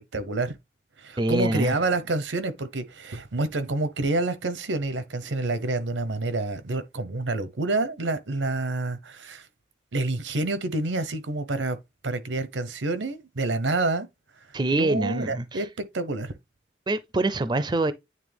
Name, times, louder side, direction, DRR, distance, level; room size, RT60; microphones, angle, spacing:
voice 1, 0.1-0.5 1.0-9.5 9.9-11.8 12.0-14.1 14.7-15.7 15.9-16.3, right 2 dB, 85° right, 0.8 m, -28 dB
voice 2, 1.2-1.8 14.5-15.6 16.9-17.9, right 2 dB, 25° right, 0.4 m, -25 dB
9.3 x 3.3 x 3.4 m
head